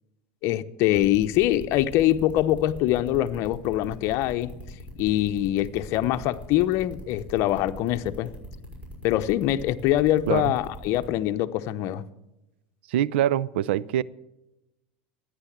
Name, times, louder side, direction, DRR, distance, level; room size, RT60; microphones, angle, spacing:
voice 1, 0.4-4.6 5.0-8.3 9.0-12.1, left 13 dB, 55° left, 0.9 m, -24 dB
sound 1, 0.9-11.1, left 1 dB, 25° right, 6.2 m, -42 dB
voice 2, 12.9-14.0, right 12 dB, 80° right, 0.5 m, -24 dB
13.5 x 10.0 x 7.4 m
supercardioid pair, 110°, 6 cm